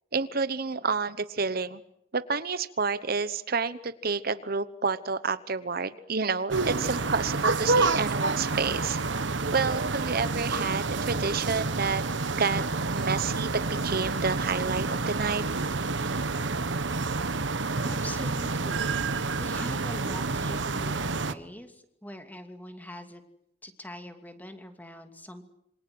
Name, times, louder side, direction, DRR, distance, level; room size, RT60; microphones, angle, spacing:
voice 1, 0.1-1.8 2.1-9.0 9.5-12.0 12.3-12.6 12.9-15.4, right 4 dB, 55° right, 13 dB, 1.0 m, -29 dB
sound 1, 6.5-21.3, right 3 dB, 75° right, 1.2 m, -28 dB
voice 2, 17.8-23.2 23.6-25.4, left 1 dB, 10° left, 6 dB, 2.7 m, -43 dB
27.5 x 25.5 x 7.9 m, 0.75 s
head